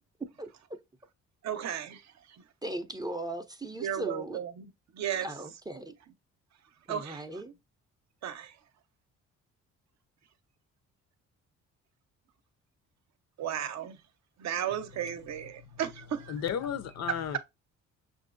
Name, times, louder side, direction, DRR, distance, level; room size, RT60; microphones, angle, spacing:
voice 1, 1.4-2.0 3.8-5.3 6.9-7.2 8.2-8.5 13.4-14.0 14.4-16.3, right 9 dB, 65° right, 0.7 m, -34 dB
voice 2, 2.6-4.4 5.2-6.0 6.9-7.5, right 1 dB, 15° right, 0.5 m, -38 dB
voice 3, 16.3-17.4, left 8 dB, 60° left, 0.7 m, -34 dB
6.0 x 2.6 x 2.5 m
cardioid pair, 90°, 30 cm